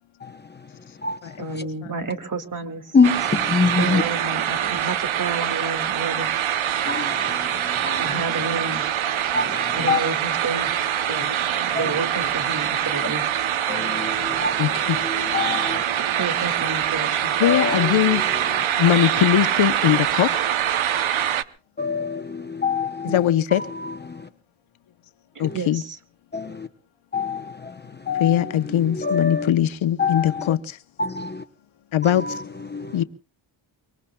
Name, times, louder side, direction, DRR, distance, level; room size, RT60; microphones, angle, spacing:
voice 1, 0.2-1.6 2.9-4.0 6.9-8.2 9.3-10.0 11.7-12.0 13.7-15.8 17.4-18.6 19.8-20.0 21.8-24.3 25.4-25.6 26.3-26.7 27.1-29.5 30.0-30.5 31.0-31.4 32.0-33.0, left 5 dB, 20° left, 0.8 m, -26 dB
voice 2, 1.4-3.0 3.6-6.3 8.0-8.9 9.7-10.7 11.1-11.2 11.6-13.2 16.2-17.3 23.1-23.2 25.4-26.0, right 3 dB, 40° right, 2.0 m, -30 dB
sound 1, 3.0-21.4, right 10 dB, 75° right, 0.9 m, -24 dB
voice 3, 14.6-15.0 17.4-18.2 18.8-20.4 23.0-23.6 25.4-25.8 28.2-30.6 31.9-32.3 32.9-33.0, left 11 dB, 70° left, 0.9 m, -21 dB
24.5 x 24.0 x 2.3 m
wide cardioid pair, 120°, 48 cm